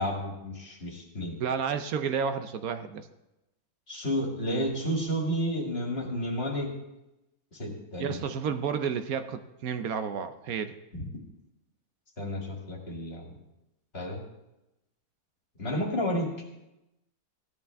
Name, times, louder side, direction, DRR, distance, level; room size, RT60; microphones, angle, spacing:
voice 1, 0.0-1.4 3.9-6.7 7.5-8.2 10.9-11.0 12.2-13.3 13.9-14.2 15.6-16.3, equal, 40° left, -1 dB, 2.5 m, -31 dB
voice 2, 1.4-3.1 8.0-10.7, right 6 dB, 70° right, 9 dB, 1.1 m, -31 dB
16.0 x 11.0 x 3.5 m, 0.93 s
omnidirectional pair, 1.6 m